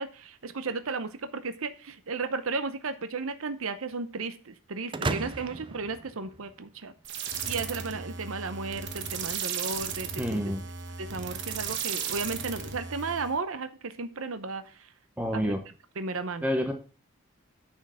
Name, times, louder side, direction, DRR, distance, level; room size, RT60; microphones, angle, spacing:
voice 1, 0.0-6.9 7.5-10.4 11.0-14.9 15.3-15.5 16.0-16.5, right 4 dB, 70° right, 10 dB, 0.7 m, -34 dB
sound 1, 4.9-6.9, right 3 dB, 20° right, 0.4 m, -34 dB
sound 2, 7.0-13.4, right 7 dB, 55° right, 1.2 m, -35 dB
voice 2, 10.2-10.6 15.2-15.6 16.4-16.7, equal, 5° right, 5 dB, 0.8 m, -28 dB
9.4 x 4.5 x 6.3 m, 0.37 s
head